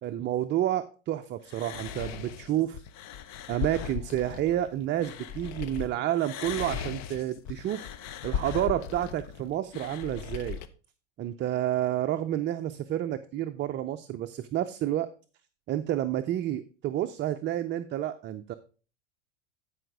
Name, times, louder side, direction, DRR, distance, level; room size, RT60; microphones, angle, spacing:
voice 1, 0.0-2.8 3.5-7.9 8.2-10.6 11.2-15.1 15.7-18.5, right 12 dB, 30° right, 8 dB, 0.5 m, -30 dB
sound 1, 1.5-5.9 6.2-10.7, left 8 dB, 50° left, 0.8 m, -38 dB
10.0 x 5.0 x 4.7 m, 0.36 s
hypercardioid pair, 105°, 36 cm